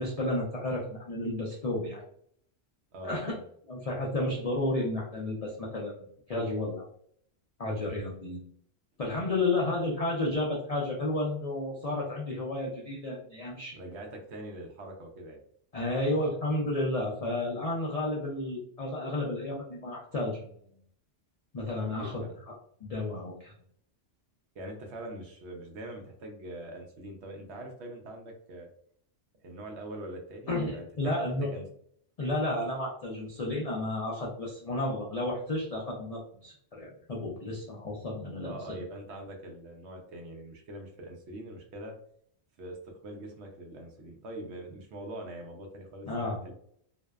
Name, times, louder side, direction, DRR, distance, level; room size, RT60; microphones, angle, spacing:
voice 1, 0.0-2.0 3.0-3.4 3.7-6.9 7.6-8.4 9.0-13.8 15.7-20.7 21.5-22.5 22.8-23.5 30.5-31.5 32.2-38.8 46.0-46.5, left 2 dB, 70° left, -3 dB, 0.3 m, -32 dB
voice 2, 2.9-3.4 13.7-15.4 21.9-22.3 24.5-28.7 29.4-31.6 38.4-41.9 42.6-46.5, right 1 dB, 70° right, 2 dB, 0.8 m, -43 dB
2.6 x 2.1 x 2.2 m, 0.65 s
omnidirectional pair, 1.3 m